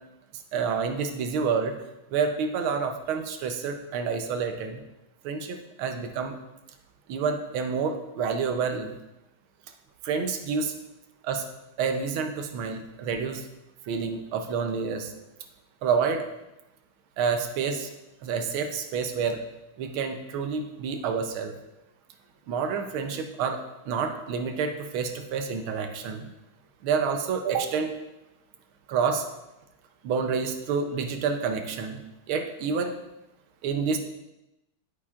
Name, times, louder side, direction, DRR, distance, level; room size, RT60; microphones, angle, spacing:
voice 1, 0.5-1.7 2.1-4.8 5.2-6.3 7.1-8.9 10.0-10.7 11.3-11.4 11.8-13.4 13.9-15.1 15.8-16.2 17.2-17.9 18.2-19.4 19.8-21.5 22.5-23.6 23.9-26.2 26.8-27.9 28.9-29.2 30.0-32.0 32.3-32.9 33.6-34.0, right 5 dB, 80° right, 6 dB, 1.6 m, -28 dB
8.7 x 8.5 x 2.4 m, 0.95 s
omnidirectional pair, 2.2 m